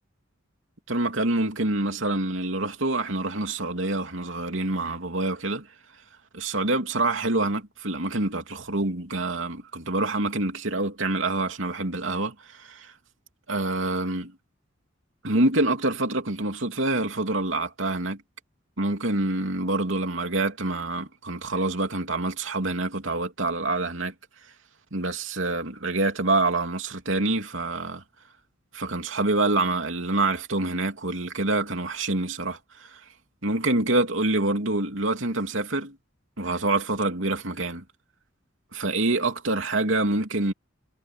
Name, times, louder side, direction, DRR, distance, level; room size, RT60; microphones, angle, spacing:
voice 1, 0.9-5.7 6.3-12.9 13.5-14.3 15.2-18.2 18.8-24.1 24.9-28.0 28.7-33.0 33.4-36.0 36.4-37.8 38.7-40.5, right 2 dB, 75° right, 3.2 m, -26 dB
head